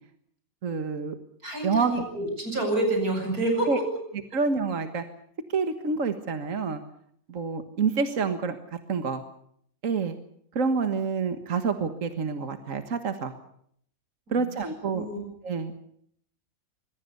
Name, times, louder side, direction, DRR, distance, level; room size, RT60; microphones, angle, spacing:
voice 1, 0.6-1.2 1.6-2.0 3.7-3.8 4.3-5.0 5.5-6.8 7.3-9.2 9.8-10.2 10.6-13.3 14.3-15.0 15.4-15.8, right 5 dB, 60° right, 7 dB, 1.9 m, -27 dB
voice 2, 1.4-3.7 14.3-14.5 14.9-15.2, right 2 dB, 80° right, 4 dB, 8.6 m, -28 dB
25.5 x 21.5 x 6.8 m, 0.67 s
omnidirectional pair, 1.5 m